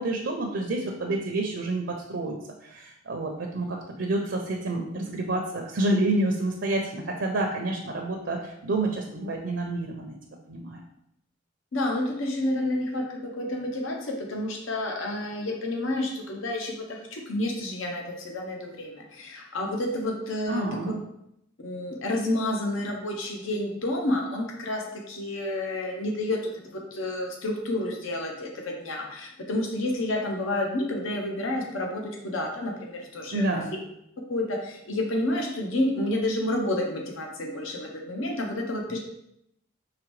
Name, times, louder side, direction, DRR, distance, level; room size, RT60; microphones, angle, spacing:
voice 1, 0.0-2.3 2.6-10.2 10.5-10.8 20.5-21.0 33.3-33.7, right 2 dB, 65° right, 2 dB, 0.5 m, -28 dB
voice 2, 11.7-20.7 21.6-33.5 34.3-39.0, left 1 dB, 80° left, 0 dB, 0.8 m, -30 dB
4.8 x 3.0 x 3.1 m, 0.79 s
head